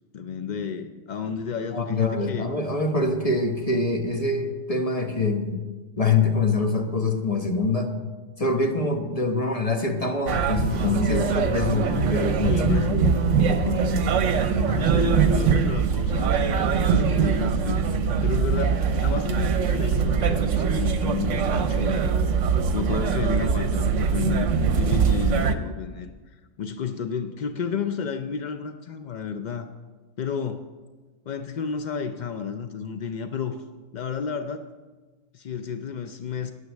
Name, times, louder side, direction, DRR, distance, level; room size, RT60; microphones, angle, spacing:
voice 1, 0.1-2.5 11.0-11.8 12.5-13.0 14.6-22.1 22.7-29.7 30.2-30.7 31.3-33.6 33.9-34.7 35.3-36.5, left 6 dB, 70° left, 8 dB, 0.4 m, -31 dB
voice 2, 1.7-5.6 6.0-7.9 8.4-14.1 23.2-23.4, left 3 dB, 30° left, 4 dB, 1.0 m, -25 dB
sound 1, 10.3-25.5, right 6 dB, 65° right, 1.1 m, -23 dB
9.4 x 9.3 x 7.2 m, 1.3 s
omnidirectional pair, 1.4 m